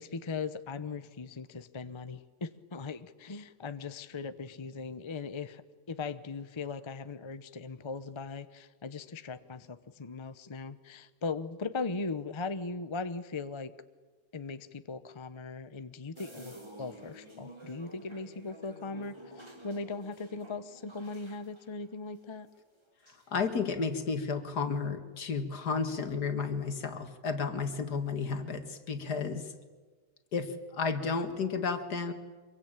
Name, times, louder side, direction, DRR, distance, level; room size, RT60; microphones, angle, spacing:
voice 1, 0.0-5.6 5.9-13.7 14.3-22.5, left 4 dB, 25° left, 12 dB, 0.7 m, -39 dB
sound 1, 16.2-22.8 23.0-23.6, right 1 dB, 15° right, 2.8 m, -51 dB
voice 2, 23.3-29.5 30.3-32.1, left 5 dB, 75° left, 8 dB, 2.3 m, -32 dB
25.5 x 22.5 x 8.9 m, 1.4 s
omnidirectional pair, 1.8 m